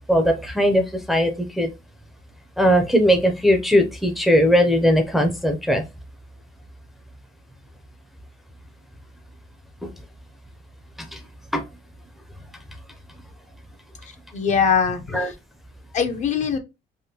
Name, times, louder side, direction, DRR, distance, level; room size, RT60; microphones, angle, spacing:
voice 1, 0.1-1.7 2.6-5.8 9.8-9.9 11.0-11.2 11.5-11.6 15.1-15.3, equal, ahead, 0.5 m, -19 dB
voice 2, 14.3-15.3 15.9-16.6, left 6 dB, 45° left, 0.7 m, -22 dB
3.5 x 2.2 x 2.8 m
cardioid pair, 110°, 17 cm